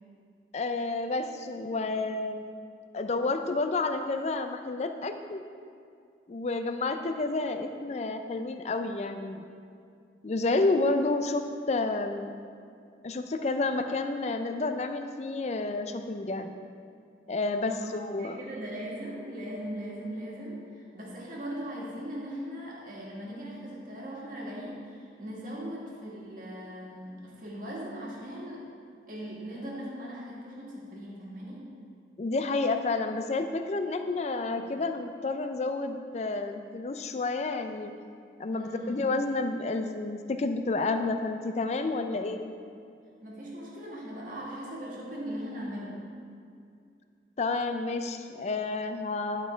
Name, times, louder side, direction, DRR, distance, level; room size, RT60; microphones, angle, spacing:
voice 1, 0.5-2.5 2.9-5.4 6.3-9.4 10.2-12.3 13.0-16.5 17.3-18.4 32.2-37.9 38.4-42.4 47.4-49.5, left 3 dB, 35° left, 7 dB, 0.4 m, -30 dB
voice 2, 18.2-28.7 29.1-31.7 34.6-34.7 38.5-39.0 42.1-42.4 43.2-46.0, equal, 45° right, -4 dB, 1.7 m, -39 dB
10.5 x 4.4 x 4.5 m, 2.4 s
head